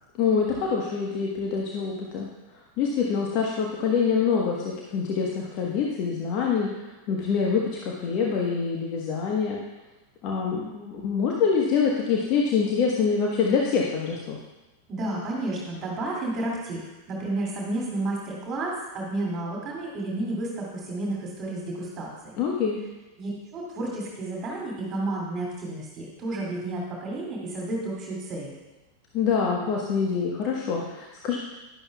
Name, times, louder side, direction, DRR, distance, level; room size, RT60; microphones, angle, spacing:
voice 1, 0.2-2.3 2.8-9.6 10.2-14.4 22.4-22.8 29.1-31.4, left 6 dB, 40° left, -2 dB, 1.2 m, -25 dB
voice 2, 14.9-22.4 23.2-28.5, right 2 dB, 30° right, -2 dB, 2.5 m, -31 dB
11.0 x 11.0 x 2.3 m, 1.1 s
figure-of-eight pair, 90°, 0 cm